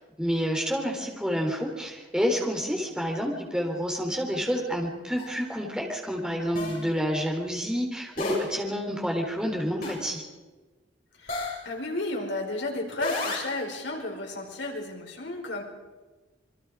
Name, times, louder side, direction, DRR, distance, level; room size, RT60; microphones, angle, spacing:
voice 1, 0.2-10.2, equal, 5° right, 1 dB, 3.9 m, -29 dB
sound 1, 5.2-5.3 6.5-6.8 8.2-8.6 9.8-10.1 11.3-11.6 13.0-13.6, left 2 dB, 50° left, 7.7 m, -32 dB
voice 2, 11.2-15.6, left 2 dB, 70° left, 1 dB, 4.9 m, -33 dB
27.5 x 23.0 x 5.0 m, 1.2 s
head